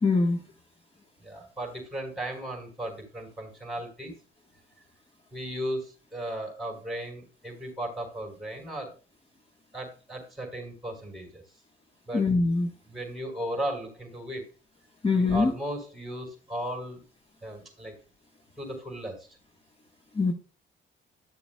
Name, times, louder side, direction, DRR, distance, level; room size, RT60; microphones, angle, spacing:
voice 1, 0.0-0.4 12.1-12.7 15.0-15.5 20.2-20.3, left 3 dB, 30° left, 2 dB, 1.2 m, -23 dB
voice 2, 1.2-4.1 5.3-8.9 9.7-11.4 12.1-12.3 12.8-14.4 15.1-17.0 17.4-17.9 18.6-19.3, right 1 dB, ahead, 1 dB, 4.5 m, -36 dB
13.0 x 7.0 x 2.2 m, 0.33 s
cardioid pair, 90°, 20 cm